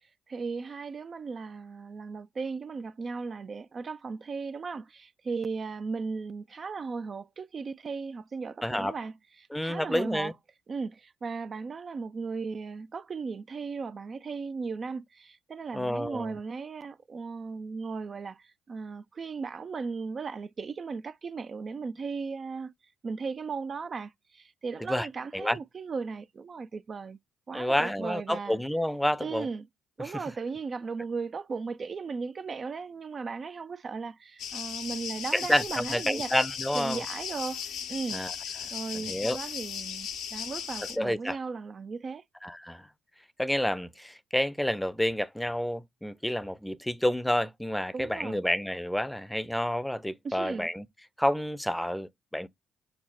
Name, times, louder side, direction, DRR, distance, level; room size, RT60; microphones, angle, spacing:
voice 1, 0.0-10.3 10.7-22.7 23.0-27.2 27.5-28.6 29.2-29.7 30.0-36.3 36.7-42.2 47.9-48.5 50.2-50.7, right 4 dB, 45° right, 0.3 m, -36 dB
voice 2, 8.6-8.9 9.5-10.3 15.7-16.4 24.9-25.1 25.3-25.6 27.5-29.5 35.3-37.0 38.1-38.3 38.9-39.4 41.0-41.4 42.4-42.9 43.4-50.8 51.2-52.5, left 1 dB, 5° left, 0.6 m, -29 dB
sound 1, 34.4-41.0, left 8 dB, 70° left, 0.7 m, -37 dB
5.8 x 2.1 x 4.3 m
hypercardioid pair, 45°, 0 cm